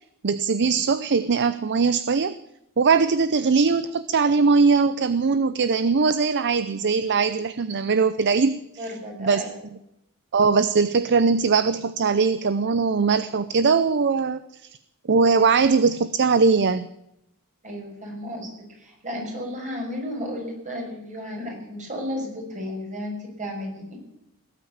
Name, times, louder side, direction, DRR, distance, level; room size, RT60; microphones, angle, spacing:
voice 1, 0.2-2.4 2.8-8.6 9.2-9.4 10.3-14.4 15.1-16.9, right 5 dB, 50° right, 14 dB, 0.6 m, -20 dB
voice 2, 8.8-9.6 17.6-18.5 18.8-24.0, equal, 35° right, 0 dB, 6.3 m, -33 dB
18.0 x 9.0 x 8.7 m, 0.82 s
head